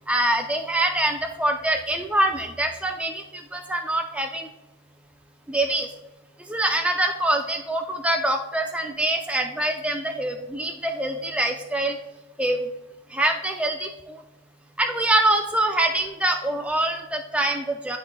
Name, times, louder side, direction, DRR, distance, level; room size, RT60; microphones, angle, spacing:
voice 1, 0.1-4.5 5.5-5.9 6.5-12.0 12.4-12.7 13.1-14.2 14.8-18.0, right 1 dB, 5° right, 4 dB, 0.3 m, -24 dB
10.0 x 4.2 x 2.2 m, 0.97 s
head